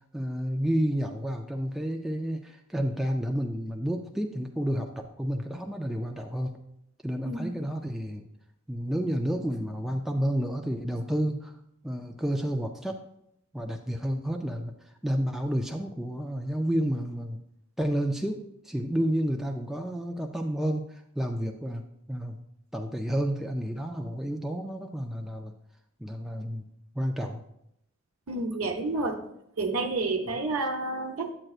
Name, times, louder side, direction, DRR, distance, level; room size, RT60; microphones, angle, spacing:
voice 1, 0.1-4.9 5.2-6.5 7.0-8.2 8.7-11.5 11.8-13.0 13.5-14.7 15.0-17.4 17.8-21.8 22.1-22.4 22.7-25.5 26.0-26.6 27.0-27.4, equal, ahead, 2 dB, 0.3 m, -30 dB
voice 2, 7.2-7.6 28.3-29.2 29.6-31.3, right 3 dB, 85° right, 2 dB, 0.8 m, -29 dB
8.6 x 7.7 x 2.4 m, 0.79 s
head